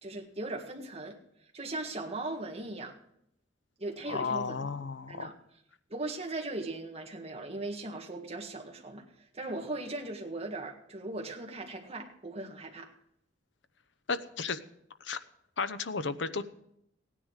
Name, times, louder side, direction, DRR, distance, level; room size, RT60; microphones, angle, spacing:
voice 1, 0.0-1.2 1.5-2.9 3.8-4.8 5.1-5.3 5.9-9.0 9.3-12.9, right 2 dB, 35° right, 1 dB, 1.7 m, -38 dB
voice 2, 4.1-5.3 14.1-14.6 15.0-15.2 15.6-16.4, left 4 dB, 70° left, 11 dB, 0.8 m, -33 dB
16.5 x 9.8 x 4.9 m, 0.75 s
head